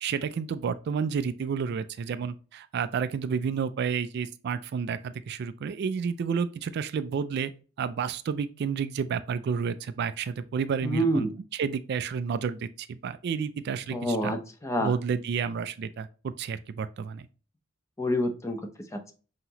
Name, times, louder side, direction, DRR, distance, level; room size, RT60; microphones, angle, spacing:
voice 1, 0.0-7.5 7.8-14.3 14.8-17.3, right 6 dB, 55° right, 0.3 m, -30 dB
voice 2, 10.8-11.3 13.9-14.9 18.0-18.6 18.9-19.1, equal, 15° left, 0.6 m, -27 dB
5.6 x 2.9 x 2.8 m
head